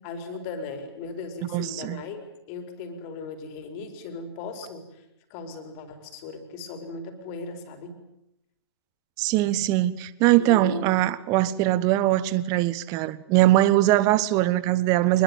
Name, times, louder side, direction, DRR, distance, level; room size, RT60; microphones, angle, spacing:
voice 1, 0.0-2.2 2.5-5.0 5.3-8.0 10.4-10.9, left 4 dB, 30° left, 4.7 m, -37 dB
voice 2, 1.5-2.0 9.2-15.2, right 15 dB, 25° right, 1.3 m, -21 dB
26.0 x 21.5 x 9.1 m
figure-of-eight pair, 120°, 14 cm